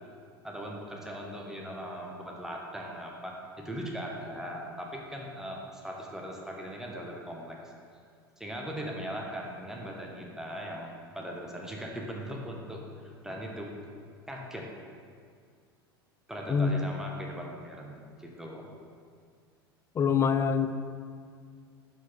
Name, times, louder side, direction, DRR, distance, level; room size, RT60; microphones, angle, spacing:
voice 1, 0.4-7.7 8.4-13.7 14.3-14.7 16.3-18.7, equal, 5° right, -1 dB, 1.0 m, -39 dB
voice 2, 19.9-20.7, left 6 dB, 20° left, 10 dB, 0.4 m, -25 dB
6.1 x 4.5 x 4.3 m, 2.1 s
figure-of-eight pair, 80°, 13 cm